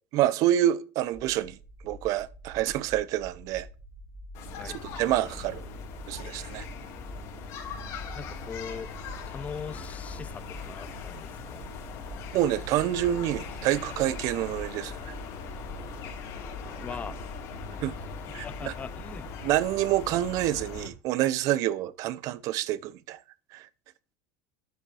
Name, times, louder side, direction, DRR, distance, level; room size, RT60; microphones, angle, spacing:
voice 1, 0.1-1.6 1.8-3.7 4.6-5.6 6.1-6.7 12.3-15.1 17.8-17.9 18.3-18.7 19.4-23.2 23.5-23.7, right 13 dB, 55° right, 0.5 m, -27 dB
sound 1, 1.1-19.3, right 1 dB, 25° right, 2.0 m, -48 dB
sound 2, 4.3-20.9, left 5 dB, 55° left, 2.6 m, -40 dB
voice 2, 8.1-8.9 9.3-11.7 16.8-17.2 18.3-19.3, left 6 dB, 20° left, 0.3 m, -41 dB
9.0 x 5.2 x 4.8 m
supercardioid pair, 120°, 7 cm